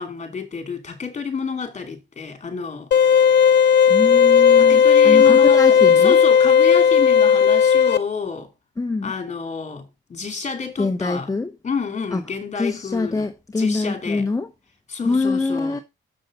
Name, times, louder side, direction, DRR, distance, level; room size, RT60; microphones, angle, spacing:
voice 1, 0.0-2.9 4.6-8.5 9.0-11.3 11.6-13.3 13.6-14.3 14.9-15.8, left 5 dB, 35° left, 2.8 m, -29 dB
sound 1, 2.9-8.0, left 7 dB, 60° left, 0.8 m, -14 dB
voice 2, 3.9-6.2 8.8-9.1 10.8-11.5 12.1-12.2 12.6-14.5 15.0-15.8, left 3 dB, 15° left, 0.9 m, -24 dB
7.3 x 6.4 x 4.9 m
cardioid pair, 90°, 20 cm